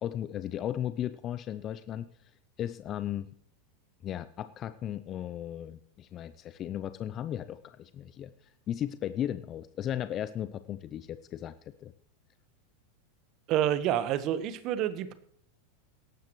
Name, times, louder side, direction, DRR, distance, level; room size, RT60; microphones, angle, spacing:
voice 1, 0.0-2.1 2.6-3.3 4.0-11.5 11.8-11.9, left 11 dB, 35° left, 13 dB, 0.6 m, -36 dB
voice 2, 13.5-15.1, right 11 dB, 45° right, 12 dB, 1.3 m, -28 dB
17.5 x 13.0 x 3.2 m, 0.66 s
hypercardioid pair, 90°, 0 cm